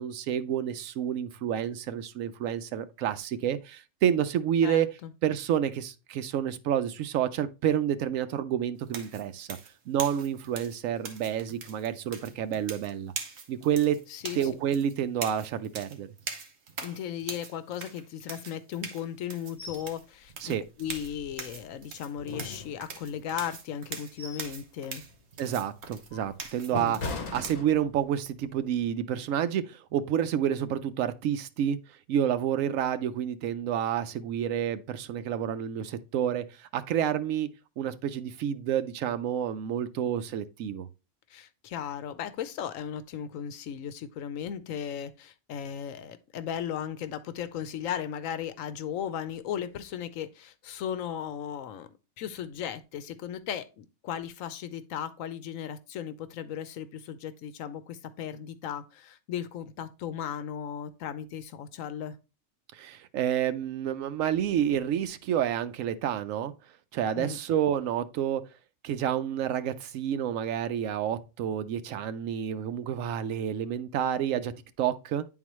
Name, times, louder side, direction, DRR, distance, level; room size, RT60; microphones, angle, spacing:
voice 1, 0.0-4.9 5.2-9.6 9.9-13.1 13.5-14.0 14.3-16.1 20.4-20.6 25.4-31.8 32.1-36.4 36.7-37.5 37.8-40.9 62.7-66.5 66.9-68.4 68.8-74.5 74.8-75.3, right 9 dB, 85° right, 1.0 m, -29 dB
voice 2, 4.6-5.1 14.1-14.4 16.8-25.0 26.7-27.0 41.3-51.9 52.2-62.2 67.1-67.4, left 9 dB, 90° left, 1.1 m, -36 dB
sound 1, 8.9-27.5, right 5 dB, 60° right, 1.2 m, -42 dB
sound 2, 19.6-19.9 20.3-20.4 20.8-21.7 22.2-23.2 23.8-24.6 25.0-25.2 25.8-28.2 28.6-28.8, left 3 dB, 65° left, 1.4 m, -40 dB
9.5 x 3.9 x 3.0 m
omnidirectional pair, 1.3 m